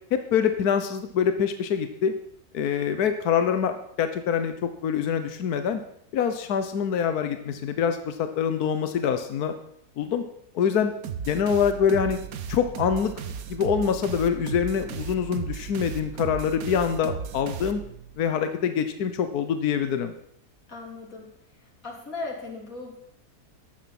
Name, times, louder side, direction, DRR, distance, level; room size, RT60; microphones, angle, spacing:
voice 1, 0.1-2.1 2.5-5.8 6.1-9.5 10.0-10.2 10.5-10.9 11.3-12.2 12.5-13.1 13.5-17.8 18.2-20.1, left 7 dB, 75° left, 8 dB, 1.4 m, -25 dB
sound 1, 11.0-18.2, right 7 dB, 70° right, 1.4 m, -35 dB
voice 2, 20.7-21.3 21.6-23.0, left 3 dB, 60° left, 0 dB, 3.6 m, -37 dB
15.0 x 10.5 x 5.9 m, 0.71 s
omnidirectional pair, 1.6 m